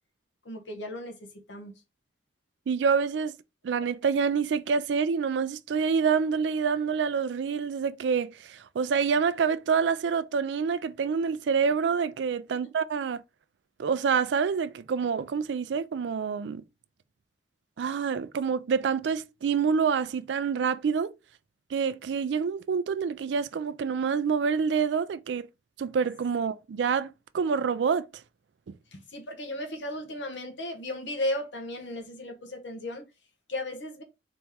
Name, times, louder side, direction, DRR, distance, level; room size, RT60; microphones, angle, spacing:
voice 1, 0.4-1.7 28.9-33.0 33.5-34.0, left 1 dB, 80° left, 1.1 m, -35 dB
voice 2, 2.7-3.4 3.6-13.2 13.8-16.6 17.8-21.1 21.7-25.5 25.8-28.0, right 6 dB, 70° right, 0.4 m, -27 dB
4.1 x 3.0 x 3.5 m
head